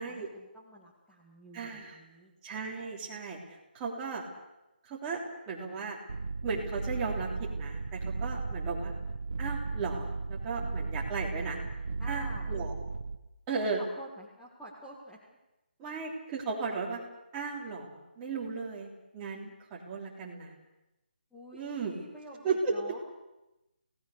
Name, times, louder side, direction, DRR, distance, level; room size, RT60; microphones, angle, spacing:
voice 1, 0.0-2.3 12.0-12.5 13.8-15.2 21.3-23.0, right 1 dB, ahead, -7 dB, 2.0 m, -49 dB
voice 2, 1.5-2.0 2.4-3.4 3.7-4.2 4.8-5.2 5.5-6.0 6.4-8.9 9.4-11.6 12.1-12.7 13.5-13.8 15.8-17.0 17.3-20.5 21.5-22.1 22.4-22.7, right 4 dB, 15° right, -3 dB, 3.3 m, -35 dB
sound 1, 6.1-13.2, right 4 dB, 65° right, 1.5 m, -35 dB
29.0 x 18.0 x 6.7 m, 0.98 s
hypercardioid pair, 170°, 5 cm